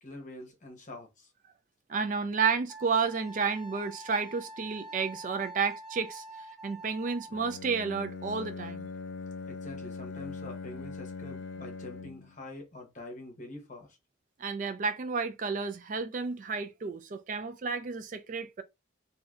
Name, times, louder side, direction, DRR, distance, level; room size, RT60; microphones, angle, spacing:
voice 1, 0.0-1.3 9.5-14.0, left 2 dB, 40° left, 0.9 m, -45 dB
voice 2, 1.9-6.2 6.6-8.9 14.4-18.6, right 5 dB, 40° right, 0.3 m, -31 dB
Wind instrument woodwind instrument, 2.7-7.6, right 1 dB, ahead, 0.6 m, -46 dB
Bowed string instrument, 7.3-12.4, left 4 dB, 70° left, 0.3 m, -41 dB
3.1 x 2.7 x 2.4 m
head